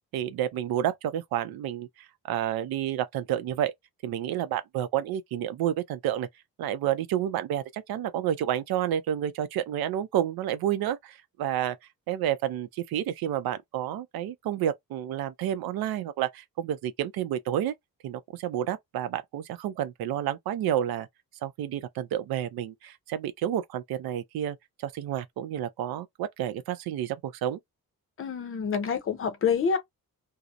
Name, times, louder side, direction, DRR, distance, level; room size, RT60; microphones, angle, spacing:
voice 1, 0.1-3.7 4.0-6.3 6.6-11.8 12.1-17.7 18.0-21.1 21.4-24.6 24.8-27.6, right 11 dB, 90° right, 0.5 m, -30 dB
voice 2, 28.2-29.8, left 6 dB, 40° left, 0.5 m, -27 dB
2.7 x 2.0 x 2.3 m
wide cardioid pair, 180°, 36 cm